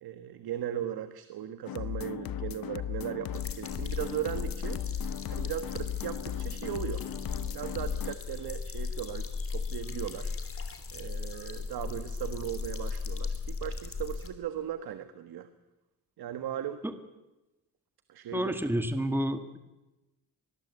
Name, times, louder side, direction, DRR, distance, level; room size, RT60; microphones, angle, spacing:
voice 1, 0.0-4.8 5.3-7.1 7.5-10.3 10.9-15.5 16.2-16.8 18.1-18.6, right 10 dB, 75° right, 10 dB, 1.5 m, -37 dB
sound 1, 1.7-8.2, left 11 dB, 65° left, 0.8 m, -37 dB
sound 2, 3.3-14.3, left 4 dB, 35° left, 3.2 m, -37 dB
voice 2, 18.3-19.6, equal, 5° right, 8 dB, 1.8 m, -29 dB
24.5 x 21.0 x 8.2 m, 1.0 s
cardioid pair, 115°, 37 cm